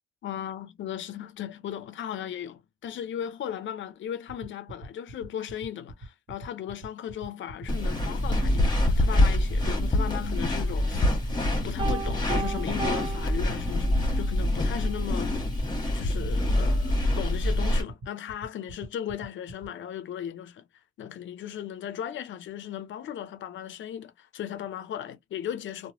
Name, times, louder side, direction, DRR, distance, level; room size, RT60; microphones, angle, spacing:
voice 1, 0.2-11.3 11.6-15.4 15.9-20.7 21.0-25.9, left 10 dB, 85° left, 0.5 m, -36 dB
sound 1, 4.3-19.7, right 1 dB, 65° right, 1.0 m, -43 dB
sound 2, 7.7-17.8, left 1 dB, 20° left, 1.2 m, -25 dB
Piano, 11.8-14.2, right 6 dB, 25° right, 0.6 m, -36 dB
2.9 x 2.2 x 2.8 m
cardioid pair, 115°, 19 cm